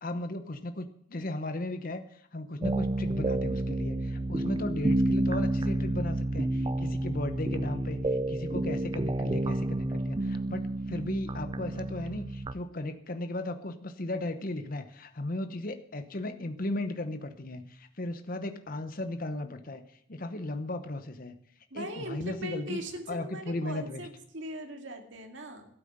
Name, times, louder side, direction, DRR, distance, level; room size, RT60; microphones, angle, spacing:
voice 1, 0.0-19.8 20.1-21.3 21.7-22.8 23.1-24.1, left 2 dB, 45° left, 8 dB, 0.9 m, -36 dB
sound 1, 2.6-12.5, right 1 dB, 25° right, 0.4 m, -30 dB
voice 2, 21.7-25.7, right 1 dB, 65° right, 4 dB, 2.4 m, -40 dB
12.5 x 9.1 x 7.8 m, 0.66 s
head